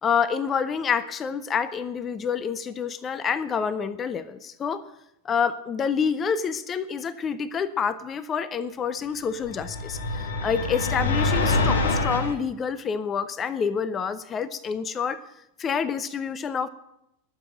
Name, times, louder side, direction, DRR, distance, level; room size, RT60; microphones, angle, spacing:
voice 1, 0.0-4.8 5.2-15.2 15.6-16.7, left 6 dB, 25° left, 16 dB, 0.8 m, -27 dB
sound 1, 9.4-12.4, left 3 dB, 65° left, 2.0 m, -25 dB
20.5 x 7.8 x 6.5 m, 0.82 s
figure-of-eight pair, 90°, 0 cm